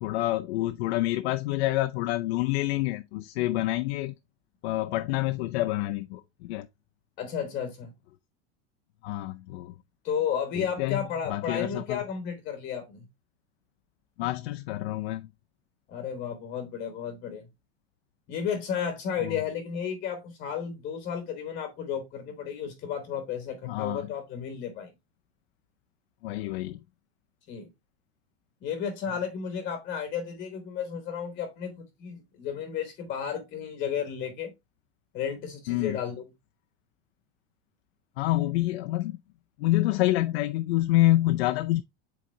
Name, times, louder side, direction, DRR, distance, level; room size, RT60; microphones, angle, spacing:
voice 1, 0.0-4.1 4.6-6.7 9.0-9.7 10.5-12.0 14.2-15.3 19.2-19.4 23.6-24.1 26.2-26.8 35.7-36.0 38.2-39.2 39.6-41.8, left 16 dB, 70° left, 0.5 m, -27 dB
voice 2, 7.2-7.9 10.0-13.1 15.9-17.5 18.3-24.9 27.5-27.7 28.6-34.5 35.1-36.2, left 7 dB, 25° left, 1.1 m, -33 dB
7.7 x 4.2 x 3.2 m
supercardioid pair, 170°, 32 cm